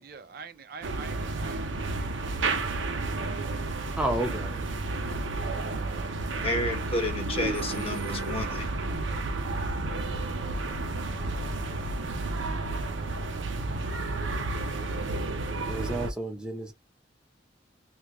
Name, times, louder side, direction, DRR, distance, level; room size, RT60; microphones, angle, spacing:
voice 1, 0.0-3.5 5.8-6.5 15.2-15.3, right 5 dB, 55° right, 0.4 m, -48 dB
sound 1, 0.8-16.1, right 2 dB, 90° right, 0.7 m, -31 dB
voice 2, 4.0-4.7 15.7-16.7, right 1 dB, 5° right, 0.7 m, -31 dB
voice 3, 6.4-8.7, left 1 dB, 30° left, 0.8 m, -31 dB
3.5 x 2.5 x 2.9 m
head